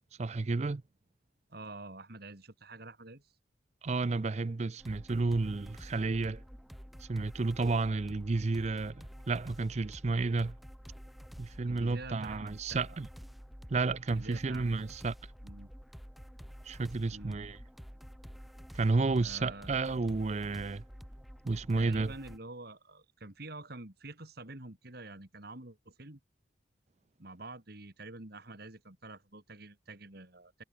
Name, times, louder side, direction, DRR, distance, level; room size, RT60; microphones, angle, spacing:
voice 1, 0.2-0.8 3.8-6.4 7.0-10.5 11.4-13.1 13.7-15.1 16.6-17.6 18.7-20.8 21.4-22.1, right 3 dB, 35° right, 0.4 m, -31 dB
voice 2, 1.5-3.4 11.7-13.0 14.1-14.9 15.4-15.7 17.1-17.3 19.2-19.8 21.7-26.2 27.2-30.6, right 2 dB, 55° right, 2.5 m, -47 dB
sound 1, 4.8-22.4, equal, ahead, 0.8 m, -49 dB
head